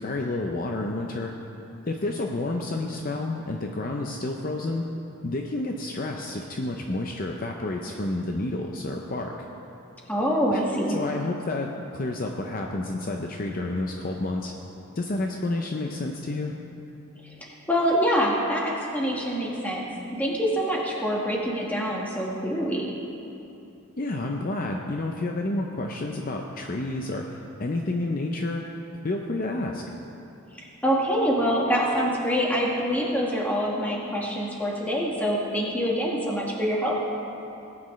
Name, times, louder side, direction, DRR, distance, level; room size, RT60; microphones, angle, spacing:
voice 1, 0.0-1.3 1.8-4.8 5.2-9.3 10.5-10.6 10.9-14.5 15.0-16.5 24.0-28.6 29.0-29.8, left 2 dB, 40° left, 2 dB, 0.5 m, -30 dB
voice 2, 10.1-11.0 17.7-19.8 20.2-22.8 30.6-37.0, equal, 5° left, -3 dB, 1.4 m, -25 dB
19.0 x 8.6 x 3.1 m, 2.9 s
head